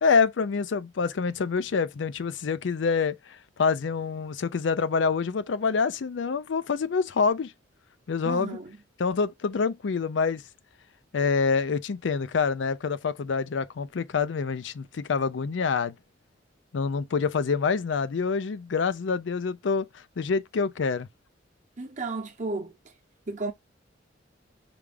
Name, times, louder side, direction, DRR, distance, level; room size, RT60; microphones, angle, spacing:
voice 1, 0.0-3.2 3.6-7.5 8.1-8.6 9.0-10.4 11.1-15.9 16.7-19.9 20.2-21.1, left 5 dB, 75° left, 0.5 m, -26 dB
voice 2, 8.2-8.8 21.8-22.7 23.3-23.5, right 3 dB, 40° right, 1.1 m, -33 dB
4.9 x 2.3 x 3.4 m
head